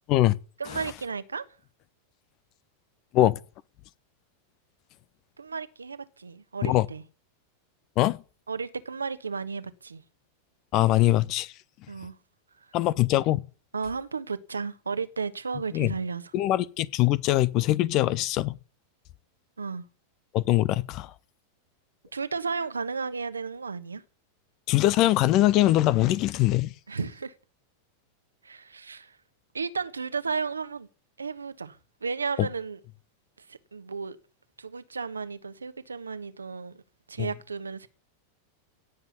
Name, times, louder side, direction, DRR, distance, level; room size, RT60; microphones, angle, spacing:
voice 1, 0.6-1.4 5.4-7.0 8.5-10.0 11.9-12.1 13.7-16.2 19.6-19.8 22.1-24.0 26.9-27.3 28.4-29.1 29.5-30.9 31.2-32.8 33.5-34.2 34.6-36.8 37.1-37.9, right 5 dB, 75° right, 1.2 m, -33 dB
voice 2, 10.7-11.5 12.7-13.4 15.7-15.9 16.3-18.6 20.3-21.1 24.7-26.7 32.4-32.5 37.2-37.3, left 15 dB, 40° left, 0.8 m, -22 dB
17.5 x 7.4 x 9.5 m
figure-of-eight pair, 90°, 0 cm